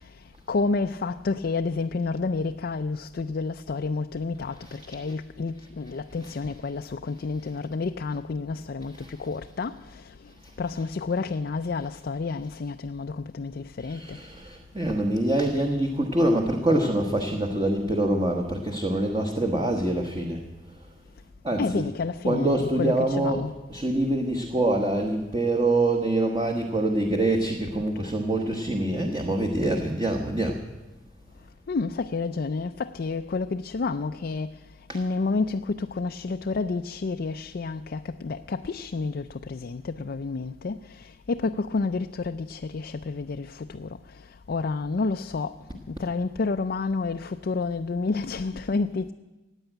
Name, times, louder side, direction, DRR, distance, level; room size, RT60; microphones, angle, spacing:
voice 1, 0.5-10.1 10.6-14.2 21.6-23.5 31.7-34.6 34.9-44.0 44.5-45.6 45.9-49.1, left 4 dB, 55° left, 0.4 m, -30 dB
voice 2, 4.6-5.0 6.2-6.3 8.9-9.1 13.8-20.4 21.4-21.9 22.2-30.6 34.9-35.0, right 1 dB, 25° right, 1.2 m, -25 dB
16.0 x 9.0 x 9.0 m
head